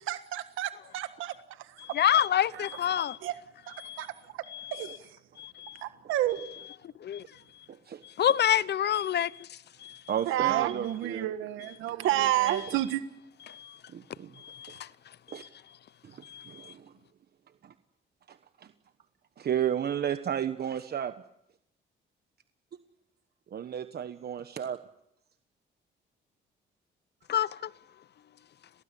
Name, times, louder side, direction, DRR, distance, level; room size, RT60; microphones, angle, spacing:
voice 1, 0.0-1.8 2.5-2.7 3.2-3.3 3.7-4.4 4.7-5.1 5.8-6.4 10.2-13.0, right 13 dB, 90° right, 1.6 m, -30 dB
voice 2, 1.8-3.2 3.8-4.1 4.5-5.0 5.4-5.8 7.0-7.2 8.0-10.0 13.5-13.8 14.4-14.9 15.3-15.5 16.2-16.7 27.3-27.7, left 10 dB, 55° left, 0.9 m, -29 dB
voice 3, 10.1-11.3 13.9-14.3 15.3-15.4 16.0-16.9 17.6-17.7 18.3-18.7 19.4-21.1 23.5-24.8, right 9 dB, 55° right, 1.2 m, -33 dB
29.5 x 19.0 x 8.5 m
cardioid pair, 90°, 20 cm